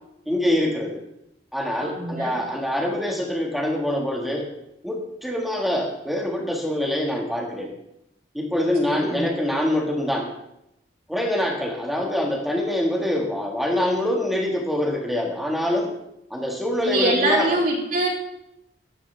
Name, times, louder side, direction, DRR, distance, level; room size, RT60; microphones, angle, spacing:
voice 1, 0.3-1.0 1.5-4.5 4.8-7.7 8.3-10.3 11.1-15.9 16.3-17.6, left 1 dB, ahead, -1 dB, 1.7 m, -25 dB
voice 2, 1.8-2.3 8.9-9.3 16.8-18.1, right 2 dB, 50° right, -3 dB, 3.7 m, -24 dB
16.0 x 12.5 x 3.4 m, 0.83 s
head